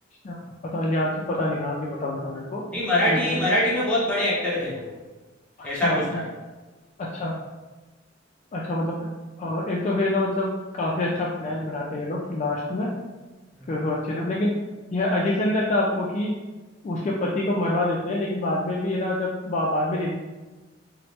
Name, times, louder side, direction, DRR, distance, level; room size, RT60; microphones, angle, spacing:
voice 1, 0.2-2.6 3.0-3.5 5.6-6.2 7.0-7.4 8.5-9.1 9.4-12.9 13.7-14.6 14.9-16.4 16.8-20.2, left 1 dB, 40° left, -3 dB, 0.3 m, -26 dB
voice 2, 2.7-4.9 5.6-6.2 13.5-13.7, left 1 dB, 5° left, -8 dB, 0.8 m, -24 dB
2.9 x 2.1 x 3.0 m, 1.2 s
head